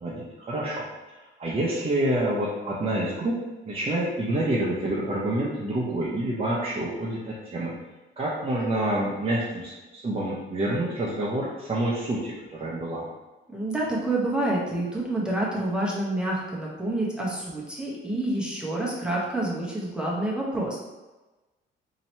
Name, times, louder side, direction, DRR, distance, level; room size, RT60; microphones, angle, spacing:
voice 1, 0.0-0.9 1.4-3.4 3.6-7.7 8.2-13.1, right 1 dB, 30° right, -6 dB, 0.8 m, -27 dB
voice 2, 13.5-20.8, right 1 dB, 5° right, -5 dB, 1.0 m, -28 dB
2.9 x 2.8 x 4.3 m, 1.1 s
cardioid pair, 90°, 20 cm